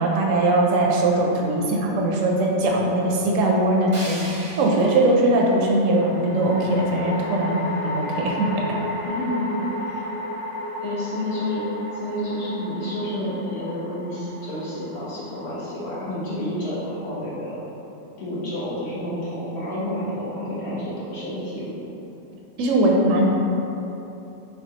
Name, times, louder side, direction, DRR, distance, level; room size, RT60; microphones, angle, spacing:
voice 1, 0.0-4.2 4.6-7.6 7.8-8.6 22.6-23.2, right 2 dB, 75° right, -1 dB, 0.9 m, -20 dB
sound 1, 2.8-3.4 5.8-17.2, left 1 dB, 80° left, 1.2 m, -34 dB
sound 2, 3.9-6.9, right 1 dB, 40° right, 0.5 m, -40 dB
voice 2, 9.0-10.0 10.8-17.6 18.2-21.7, left 1 dB, 55° left, -9 dB, 1.2 m, -29 dB
5.7 x 2.3 x 2.8 m, 3.0 s
omnidirectional pair, 1.4 m